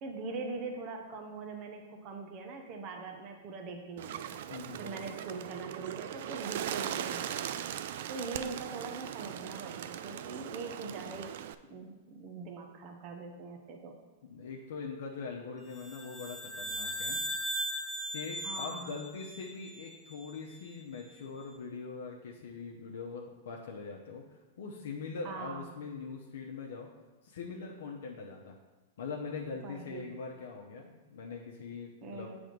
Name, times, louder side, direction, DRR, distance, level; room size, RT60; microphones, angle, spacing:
voice 1, 0.0-4.2 4.8-7.7 8.1-11.3 11.7-14.0 18.4-18.9 25.2-25.6 29.6-30.1 32.0-32.4, right 4 dB, 40° right, 3 dB, 0.8 m, -42 dB
Bird, 4.0-11.5, right 10 dB, 65° right, 0.3 m, -39 dB
voice 2, 4.5-5.1 14.2-17.2 18.1-26.9 27.2-28.6 29.0-32.3, left 4 dB, 75° left, -1 dB, 0.8 m, -42 dB
sound 1, 15.8-20.3, equal, 10° left, 0.7 m, -38 dB
7.5 x 3.5 x 5.1 m, 1.2 s
hypercardioid pair, 135°, 0 cm